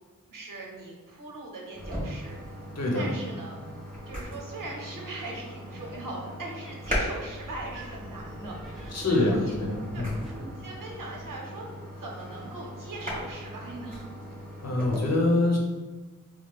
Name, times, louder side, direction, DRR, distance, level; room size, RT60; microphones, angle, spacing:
voice 1, 0.3-2.4 2.9-3.5 4.1-9.6 9.9-10.0 10.3-11.7 12.0-14.1, right 2 dB, 75° right, -2 dB, 0.8 m, -40 dB
sound 1, 1.7-15.0, equal, 25° right, 1.4 m, -38 dB
voice 2, 2.7-3.1 8.9-10.2 14.6-15.6, left 2 dB, 50° left, -1 dB, 0.8 m, -25 dB
sound 2, 7.4-11.4, right 1 dB, ahead, 0.7 m, -45 dB
4.4 x 2.0 x 2.4 m, 1.3 s
cardioid pair, 50°, 32 cm